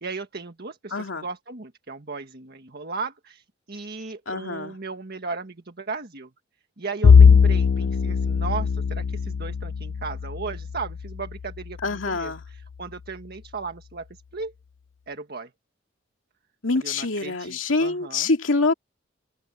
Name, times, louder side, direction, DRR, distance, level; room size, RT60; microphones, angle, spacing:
voice 1, 0.0-6.3 6.8-14.5 15.1-15.5 16.8-18.3, right 4 dB, 55° right, 1.6 m, -36 dB
voice 2, 0.9-1.3 4.3-4.8 11.8-12.4 16.6-18.7, left 3 dB, 85° left, 2.3 m, -25 dB
Bowed string instrument, 7.0-11.6, left 6 dB, 70° left, 0.4 m, -19 dB
open air
head